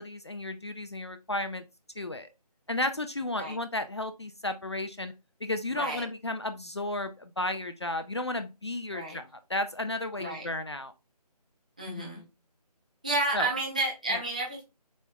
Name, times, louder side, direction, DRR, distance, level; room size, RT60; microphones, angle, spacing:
voice 1, 0.0-1.6 2.0-2.3 2.7-5.1 5.4-10.9 11.9-12.2 13.3-13.5 14.1-14.2, left 2 dB, 40° left, 9 dB, 0.4 m, -33 dB
voice 2, 5.7-6.0 8.9-9.2 10.2-10.5 11.8-12.2 13.0-14.6, right 2 dB, 10° right, -3 dB, 0.6 m, -31 dB
7.1 x 3.1 x 2.2 m, 0.25 s
figure-of-eight pair, 160°, 21 cm